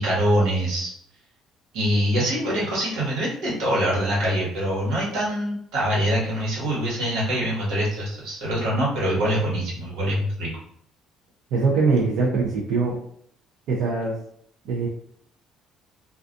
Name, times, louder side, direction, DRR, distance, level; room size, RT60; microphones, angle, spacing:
voice 1, 0.0-0.9 1.7-10.5, equal, 90° right, -5 dB, 1.3 m, -24 dB
voice 2, 11.5-13.0 13.7-14.2 14.6-14.9, right 4 dB, 70° right, -5 dB, 0.5 m, -22 dB
2.4 x 2.3 x 2.5 m, 0.67 s
cardioid pair, 170°, 0 cm